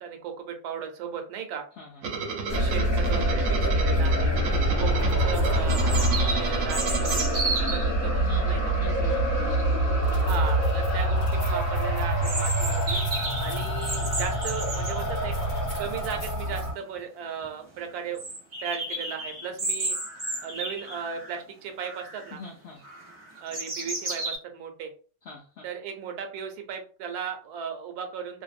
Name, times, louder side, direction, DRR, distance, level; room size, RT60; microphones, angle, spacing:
voice 1, 0.0-1.6 2.5-4.3 4.8-8.7 10.1-13.0 13.4-15.4 15.8-18.2 18.6-20.0 20.4-22.4 23.4-24.9 25.6-28.4, right 7 dB, 85° right, 5 dB, 1.1 m, -36 dB
voice 2, 1.8-2.2 8.2-10.2 22.3-22.8 25.2-25.6, left 3 dB, 75° left, -1 dB, 0.5 m, -43 dB
sound 1, 2.0-8.0, right 5 dB, 70° right, 0.9 m, -33 dB
sound 2, 2.5-16.7, right 1 dB, 40° left, 1.0 m, -25 dB
sound 3, 4.7-4.8 5.7-7.9 12.2-15.0 16.6-16.7 17.0-17.1 17.4-17.5 18.2-21.4 21.8-22.3 22.8-24.4, right 2 dB, 45° right, 0.7 m, -32 dB
2.5 x 2.1 x 2.4 m, 0.39 s
omnidirectional pair, 1.6 m